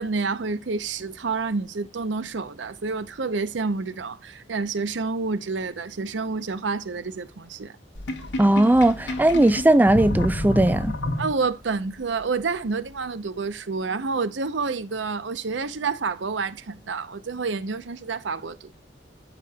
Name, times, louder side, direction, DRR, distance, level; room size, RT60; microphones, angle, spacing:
voice 1, 0.0-7.8 11.2-18.7, right 4 dB, 80° right, 0.7 m, -29 dB
Sink (filling or washing), 7.9-11.7, left 1 dB, 80° left, 1.2 m, -29 dB
voice 2, 8.4-10.9, right 1 dB, 10° right, 0.3 m, -18 dB
11.5 x 5.1 x 2.3 m
head